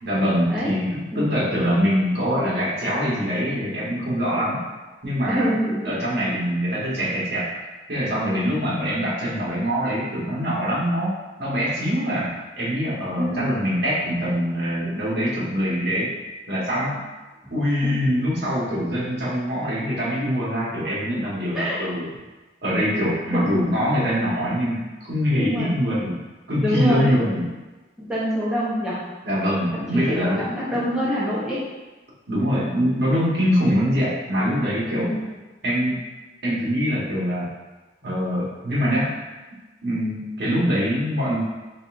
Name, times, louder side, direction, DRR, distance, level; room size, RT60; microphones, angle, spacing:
voice 1, 0.0-4.6 5.0-5.5 5.8-7.5 7.9-16.1 16.5-17.0 17.5-22.1 22.6-26.2 26.5-27.4 29.2-30.5 32.3-35.1 35.6-36.1 36.4-37.5 38.0-39.2 39.8-41.4, equal, 65° right, -8 dB, 1.3 m, -23 dB
voice 2, 1.1-1.5 5.3-6.0 13.2-13.5 17.8-18.3 18.8-18.9 21.5-21.8 23.3-23.6 25.3-26.0 26.6-27.1 28.0-29.0 29.7-31.6 34.9-35.2, equal, 5° right, -9 dB, 0.7 m, -26 dB
4.0 x 3.4 x 2.5 m, 1.2 s
head